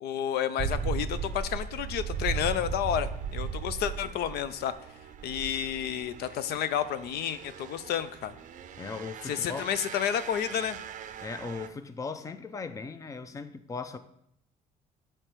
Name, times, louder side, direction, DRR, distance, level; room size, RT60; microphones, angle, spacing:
voice 1, 0.0-4.7 5.2-8.3 9.2-10.8, left 9 dB, 70° left, 13 dB, 0.5 m, -31 dB
sound 1, 0.6-11.7, right 6 dB, 50° right, 0.5 m, -37 dB
voice 2, 8.8-9.6 11.2-14.0, left 4 dB, 20° left, 11 dB, 0.5 m, -38 dB
6.5 x 4.4 x 4.5 m, 0.74 s
cardioid pair, 110°, 17 cm